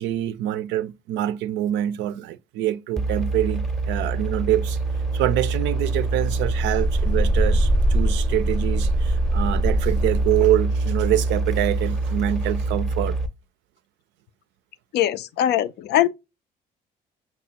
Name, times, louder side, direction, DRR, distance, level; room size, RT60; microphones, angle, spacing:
voice 1, 0.0-4.8 5.1-13.2, right 13 dB, 60° right, 0.4 m, -25 dB
sound 1, 3.0-13.3, right 2 dB, ahead, 0.7 m, -23 dB
voice 2, 14.9-16.1, left 12 dB, 55° left, 0.4 m, -21 dB
5.7 x 2.2 x 2.8 m
hypercardioid pair, 45°, 21 cm